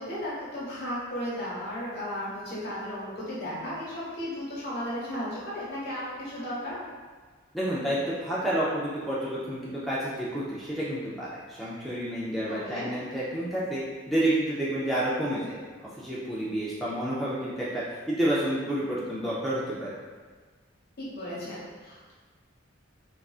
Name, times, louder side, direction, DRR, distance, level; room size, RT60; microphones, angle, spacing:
voice 1, 0.0-6.8 12.5-12.9 21.0-22.1, equal, 55° left, -7 dB, 1.1 m, -35 dB
voice 2, 7.5-13.8 14.1-19.9, right 1 dB, ahead, -9 dB, 0.4 m, -29 dB
3.5 x 2.4 x 2.3 m, 1.5 s
head